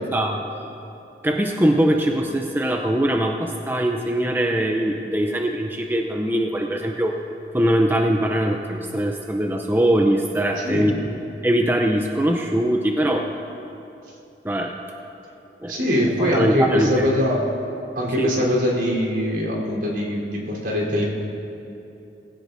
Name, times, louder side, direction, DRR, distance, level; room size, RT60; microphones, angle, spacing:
voice 1, 1.2-7.2 7.5-10.9 11.4-13.3 14.4-14.7 15.6-15.8 16.2-17.1 18.2-18.3, right 1 dB, 10° right, 2 dB, 0.6 m, -21 dB
voice 2, 10.6-10.9 15.7-17.4 18.0-21.0, equal, 75° right, -4 dB, 3.8 m, -22 dB
20.0 x 16.5 x 2.7 m, 2.8 s
head